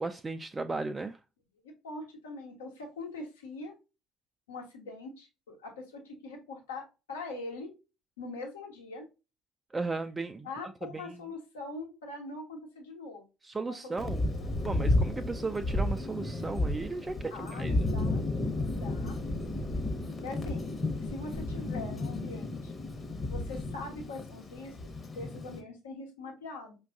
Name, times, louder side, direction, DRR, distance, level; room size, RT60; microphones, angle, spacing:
voice 1, 0.0-1.2 9.7-11.2 13.4-14.3 14.6-17.7, right 3 dB, 20° right, 0.3 m, -36 dB
voice 2, 1.6-3.7 4.5-7.7 8.2-9.0 10.4-13.2 13.7-14.0 14.6-14.7 17.3-18.2 18.7-19.2 20.2-22.7 23.2-24.8 25.1-26.8, left 3 dB, 80° left, 1.0 m, -42 dB
Thunder, 14.0-25.6, left 2 dB, 25° left, 0.9 m, -32 dB
5.1 x 2.4 x 2.4 m
figure-of-eight pair, 60°, 0 cm